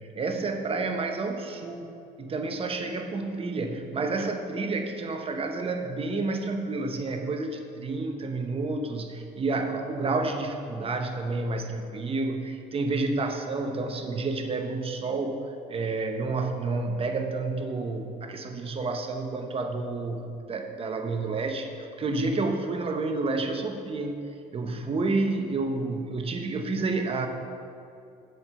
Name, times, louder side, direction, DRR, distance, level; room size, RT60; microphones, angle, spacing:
voice 1, 0.0-15.4 15.7-24.2 24.5-27.3, right 3 dB, 35° right, 5 dB, 0.8 m, -30 dB
8.0 x 4.6 x 6.8 m, 2.6 s
cardioid pair, 110°, 17 cm